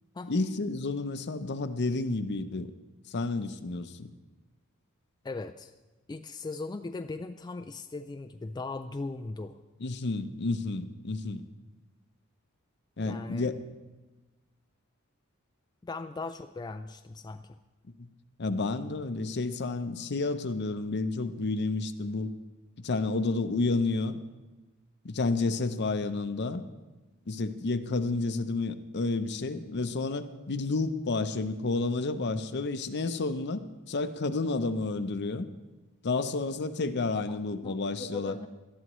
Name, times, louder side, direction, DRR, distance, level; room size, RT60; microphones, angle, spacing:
voice 1, 0.3-2.7 3.1-4.1 9.8-11.4 13.0-13.6 18.0-18.1 18.4-22.3 22.8-24.2 25.0-26.6 27.3-35.5 36.0-38.4, left 3 dB, 50° left, 11 dB, 0.6 m, -30 dB
voice 2, 5.2-5.7 6.1-9.6 13.0-13.5 15.8-17.5 37.3-38.5, left 3 dB, 20° left, 6 dB, 0.3 m, -39 dB
19.0 x 12.5 x 3.1 m, 1.1 s
head